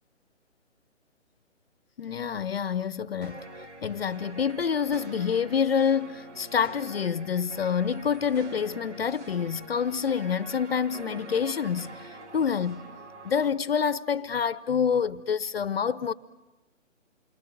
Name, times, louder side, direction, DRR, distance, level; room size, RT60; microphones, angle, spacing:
voice 1, 2.0-3.4 3.8-12.8 13.2-16.1, left 7 dB, 50° left, 0.8 m, -27 dB
sound 1, 3.2-13.5, right 2 dB, 65° right, 3.0 m, -45 dB
28.5 x 23.5 x 7.8 m
hypercardioid pair, 155°, 38 cm